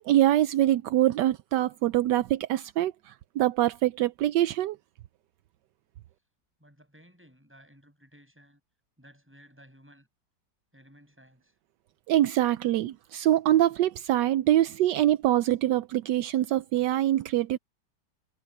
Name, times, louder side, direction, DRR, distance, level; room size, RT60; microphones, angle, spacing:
voice 1, 0.0-4.8 12.1-17.6, right 13 dB, 80° right, 1.2 m, -24 dB
voice 2, 6.6-8.6 9.0-10.1 10.7-11.6, equal, 5° right, 6.9 m, -56 dB
omnidirectional pair, 1.9 m